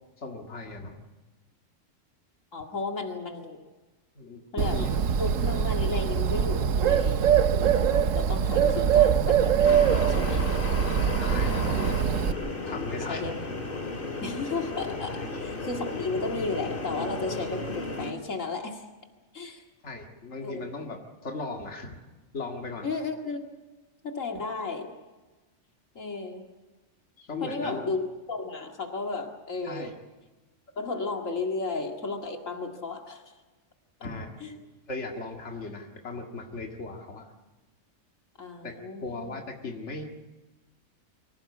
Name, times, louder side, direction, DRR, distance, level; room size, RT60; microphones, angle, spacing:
voice 1, 0.2-1.0 4.2-4.9 8.6-9.0 11.2-11.9 12.6-13.2 15.2-15.3 19.8-22.0 22.3-22.9 27.2-27.9 29.6-29.9 34.0-34.4 34.9-37.3 38.6-40.0, left 3 dB, 60° left, 2 dB, 2.3 m, -37 dB
voice 2, 2.5-3.7 4.5-4.9 5.2-10.6 13.1-13.3 14.2-18.8 19.3-19.6 20.4-20.6 22.8-23.5 24.0-24.9 25.9-26.4 27.4-30.0 30.8-33.3 34.4-34.6 38.4-39.3, left 3 dB, 80° left, 3 dB, 2.5 m, -34 dB
Bird, 4.6-12.3, right 8 dB, 80° right, 1.3 m, -23 dB
sound 1, 9.6-18.1, left 3 dB, 45° left, 2.3 m, -34 dB
24.5 x 17.0 x 8.5 m, 1.2 s
omnidirectional pair, 1.3 m